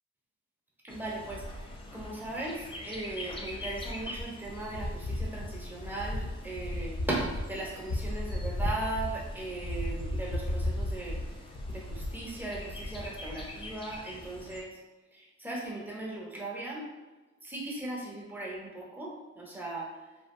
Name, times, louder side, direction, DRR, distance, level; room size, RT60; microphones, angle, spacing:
voice 1, 0.8-11.3 11.7-14.8 15.1-16.9 17.4-20.1, right 2 dB, 5° right, -4 dB, 0.7 m, -38 dB
Bird, 0.9-14.6, left 1 dB, 20° left, 0.3 m, -36 dB
2.7 x 2.1 x 2.5 m, 1.1 s
cardioid pair, 90°, 30 cm